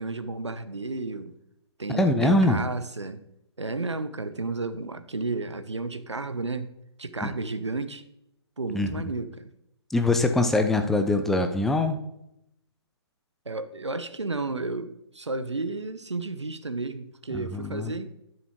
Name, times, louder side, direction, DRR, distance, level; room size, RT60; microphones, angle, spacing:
voice 1, 0.0-1.3 1.8-3.2 3.6-6.7 7.0-8.0 8.6-9.5 13.5-18.1, right 3 dB, 75° right, 11 dB, 1.0 m, -32 dB
voice 2, 1.9-2.6 7.2-7.3 8.7-8.9 9.9-12.0 17.3-17.9, left 2 dB, ahead, 7 dB, 0.4 m, -23 dB
9.9 x 7.1 x 4.4 m, 0.82 s
figure-of-eight pair, 130°, 15 cm